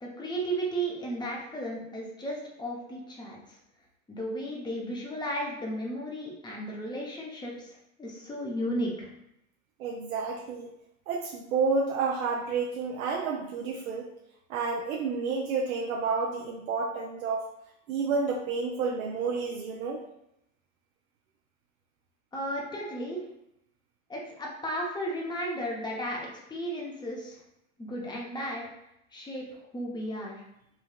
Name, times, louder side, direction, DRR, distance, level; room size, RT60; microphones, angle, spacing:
voice 1, 0.0-3.6 4.1-9.1 22.3-23.2 24.1-27.4 27.8-28.6 29.1-29.4 29.7-30.4, right 1 dB, 10° left, -2 dB, 0.6 m, -34 dB
voice 2, 9.8-10.7 11.1-14.1 14.5-17.4 17.9-20.0, right 4 dB, 90° right, -1 dB, 0.5 m, -30 dB
3.2 x 2.3 x 2.2 m, 0.80 s
hypercardioid pair, 105°, 41 cm